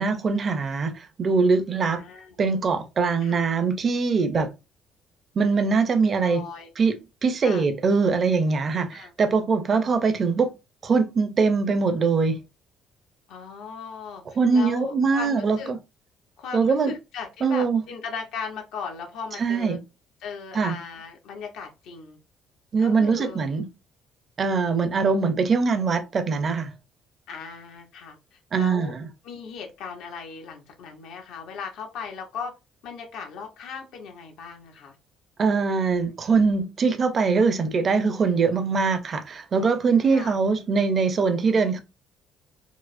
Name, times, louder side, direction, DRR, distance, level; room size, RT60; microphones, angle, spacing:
voice 1, 0.0-2.0 2.4-4.5 5.4-6.4 6.8-10.5 10.8-12.4 14.4-15.8 16.5-16.9 17.4-17.8 19.4-19.8 20.5-20.7 22.7-23.7 24.4-26.7 28.5-29.1 35.4-41.8, right 4 dB, 30° right, 0.5 m, -22 dB
voice 2, 1.8-2.4 3.2-3.4 6.2-6.7 7.4-7.7 8.9-9.1 13.3-14.2 14.5-15.7 16.4-19.8 20.2-22.2 22.8-23.4 27.3-28.9 29.2-32.5 32.8-35.0 40.1-40.4, left 6 dB, 75° left, 0.8 m, -37 dB
4.6 x 2.0 x 2.5 m
cardioid pair, 155°, 0 cm